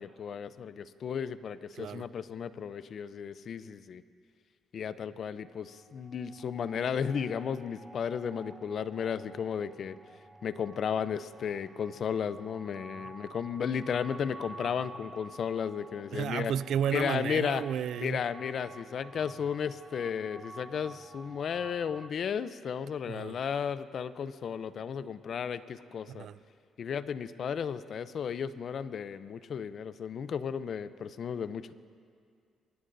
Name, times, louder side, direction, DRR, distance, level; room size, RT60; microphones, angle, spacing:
voice 1, 0.0-4.0 4.7-10.0 10.4-16.5 16.9-17.6 18.0-26.3 26.8-31.7, left 7 dB, 60° left, 0.6 m, -34 dB
sound 1, 5.5-22.1, right 2 dB, 15° right, 0.6 m, -51 dB
voice 2, 16.1-18.2 23.1-23.4 26.1-26.4, right 9 dB, 70° right, 0.3 m, -32 dB
24.0 x 19.5 x 2.7 m
supercardioid pair, 75°, 0 cm